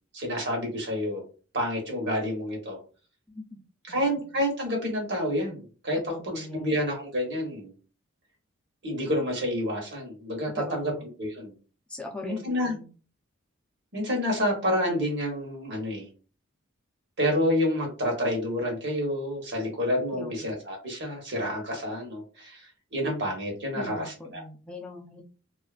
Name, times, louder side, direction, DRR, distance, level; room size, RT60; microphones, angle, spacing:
voice 1, 0.1-1.2 1.5-2.8 3.9-7.7 8.8-10.9 11.2-11.5 12.2-12.7 13.9-16.1 17.2-24.4, equal, 50° right, 0 dB, 1.0 m, -29 dB
voice 2, 3.3-3.6 3.9-4.3 6.1-6.8 10.6-11.0 11.9-12.9 20.1-20.5 23.7-25.2, left 2 dB, 5° left, -1 dB, 0.5 m, -40 dB
2.6 x 2.4 x 2.4 m, 0.36 s
head